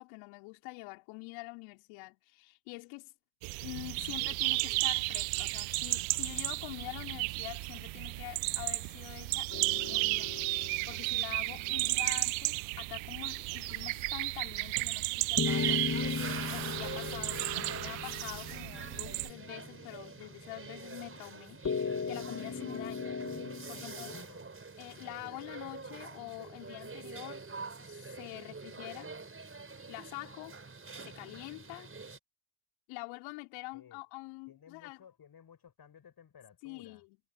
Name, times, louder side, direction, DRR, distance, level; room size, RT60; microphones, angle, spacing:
voice 1, 0.0-3.1 3.6-23.2 23.7-24.3 24.8-27.4 27.8-29.1 29.9-30.6 31.0-31.9 32.9-35.0 36.6-37.2, left 27 dB, 75° left, 3.8 m, -46 dB
sound 1, 3.4-19.3, right 28 dB, 70° right, 0.9 m, -34 dB
sound 2, 9.5-12.2 15.4-20.0 21.6-24.2, left 5 dB, 35° left, 2.0 m, -38 dB
sound 3, 15.4-32.2, right 4 dB, 25° right, 5.2 m, -45 dB
voice 2, 23.7-24.5 33.7-34.0 34.5-37.0, left 8 dB, 50° left, 6.4 m, -57 dB
hypercardioid pair, 45°, 48 cm